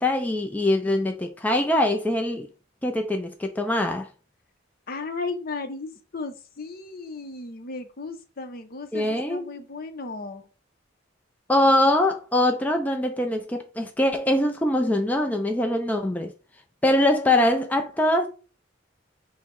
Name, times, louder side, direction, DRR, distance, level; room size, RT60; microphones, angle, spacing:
voice 1, 0.0-2.5 2.8-4.1 8.9-9.5 11.5-16.3 16.8-18.3, left 1 dB, 10° left, 0.4 m, -23 dB
voice 2, 4.9-10.4, left 3 dB, 50° left, 0.7 m, -35 dB
5.5 x 2.1 x 4.5 m
head